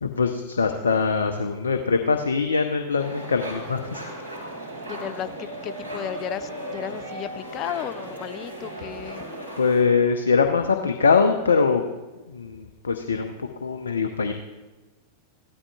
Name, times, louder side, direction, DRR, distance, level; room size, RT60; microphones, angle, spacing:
voice 1, 0.0-4.0 9.6-11.8 12.3-13.3 13.6-14.3, left 5 dB, 70° left, 7 dB, 0.7 m, -22 dB
sound 1, 3.0-9.8, right 1 dB, 80° right, 3.9 m, -36 dB
voice 2, 4.9-5.3 5.6-9.2, left 11 dB, 35° left, 15 dB, 0.5 m, -34 dB
16.0 x 12.5 x 2.4 m, 1.2 s
figure-of-eight pair, 90°, 0 cm